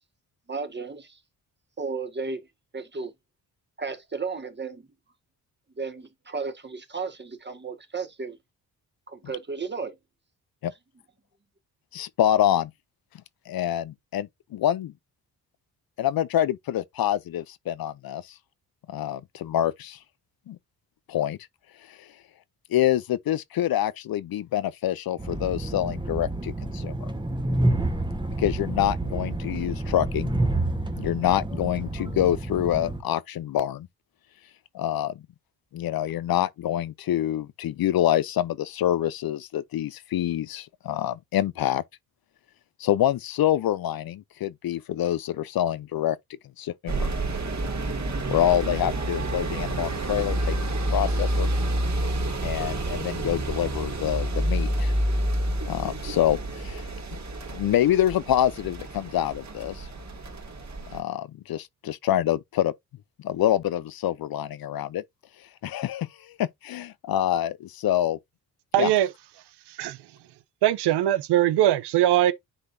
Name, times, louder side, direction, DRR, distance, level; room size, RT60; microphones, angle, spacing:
voice 1, 0.5-1.2 1.8-2.5 2.7-3.1 3.8-4.8 5.8-8.4 9.1-10.0, right 4 dB, 25° right, 1.7 m, -34 dB
voice 2, 11.9-12.7 13.5-14.9 16.0-18.2 18.9-20.0 20.5-20.6 21.1-21.4 21.9-22.0 22.7-26.9 28.4-30.3 31.0-33.9 34.7-35.2 35.7-41.8 42.8-46.2 46.6-47.1 48.3-50.5 50.9-51.5 52.4-54.9 55.7-56.9 57.5-59.9 60.9-62.7 63.2-65.0 65.6-68.2 68.8-68.9, left 12 dB, 60° left, 0.6 m, -26 dB
Train, 25.2-33.0, right 2 dB, 10° right, 1.3 m, -29 dB
sound 1, 46.9-61.0, right 1 dB, 45° right, 2.6 m, -29 dB
voice 3, 68.7-69.1 69.7-70.0 70.6-72.3, right 13 dB, 85° right, 0.7 m, -21 dB
9.8 x 3.9 x 2.7 m
cardioid pair, 65°, 39 cm